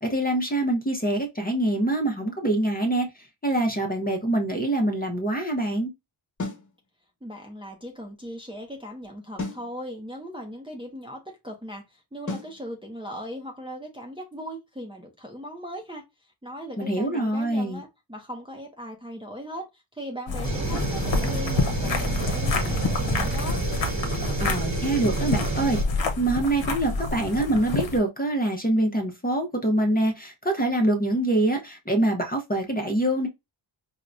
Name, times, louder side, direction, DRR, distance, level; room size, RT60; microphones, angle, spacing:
voice 1, 0.0-3.1 3.4-5.9 16.8-17.8 24.4-33.3, right 1 dB, 20° left, 0.9 m, -25 dB
sound 1, 6.4-6.7 9.4-9.7 12.3-12.6, left 3 dB, 35° left, 1.4 m, -32 dB
voice 2, 7.2-23.6, equal, 10° right, 0.7 m, -38 dB
sound 2, 20.3-28.0, left 3 dB, 70° left, 0.9 m, -28 dB
sound 3, 20.4-25.8, right 2 dB, 35° right, 1.0 m, -29 dB
4.6 x 2.2 x 2.6 m
wide cardioid pair, 95°, 48 cm